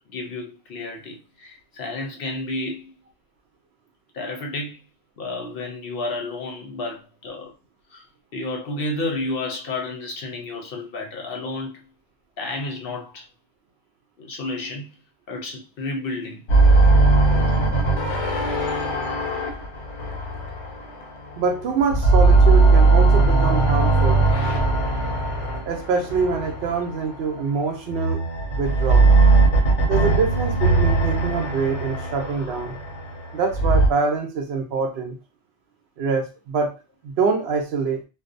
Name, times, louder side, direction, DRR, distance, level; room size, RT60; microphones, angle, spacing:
voice 1, 0.1-2.9 4.1-4.8 5.2-7.5 7.9-8.0 8.3-11.8 12.4-13.3 14.2-14.9 15.3-16.4, left 2 dB, 60° left, 0.7 m, -31 dB
sound 1, 16.5-21.4 21.8-27.1 27.9-33.9, right 3 dB, 90° left, 1.0 m, -19 dB
voice 2, 21.4-24.3 25.7-28.2 28.5-29.1 29.9-32.8 33.3-35.2 36.0-36.8 37.0-38.0, right 5 dB, 70° right, 0.8 m, -25 dB
2.5 x 2.0 x 2.5 m
omnidirectional pair, 1.2 m